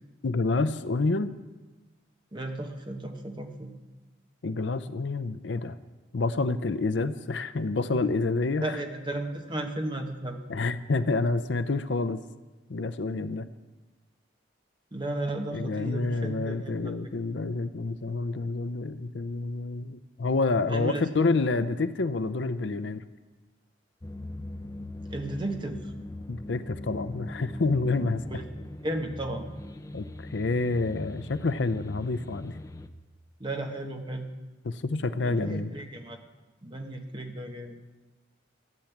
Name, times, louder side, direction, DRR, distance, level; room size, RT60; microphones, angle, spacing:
voice 1, 0.2-1.3 4.4-5.8 6.1-8.8 10.5-12.2 12.7-13.5 15.5-23.0 26.3-28.4 29.9-32.5 34.6-35.7, left 3 dB, 65° left, 13 dB, 0.6 m, -28 dB
voice 2, 2.3-3.7 8.6-10.4 14.9-16.9 20.7-21.1 25.1-25.8 28.3-28.4 28.8-29.5 33.4-34.3 35.2-36.2 36.6-37.8, right 1 dB, 25° right, 4 dB, 1.2 m, -34 dB
sound 1, 24.0-32.9, left 1 dB, 15° left, 0.5 m, -41 dB
13.5 x 8.8 x 7.2 m, 1.2 s
head